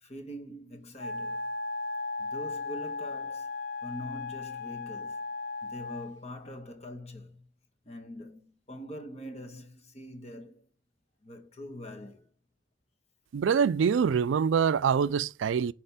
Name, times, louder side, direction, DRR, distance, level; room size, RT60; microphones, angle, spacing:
voice 1, 0.0-1.5 2.2-3.5 3.8-5.2 5.6-7.4 7.8-10.7 11.2-12.3, left 1 dB, 35° left, 1.3 m, -43 dB
Wind instrument woodwind instrument, 1.0-6.2, left 3 dB, 75° left, 1.0 m, -36 dB
voice 2, 13.3-15.7, right 6 dB, 80° right, 0.4 m, -25 dB
6.5 x 4.3 x 5.5 m
head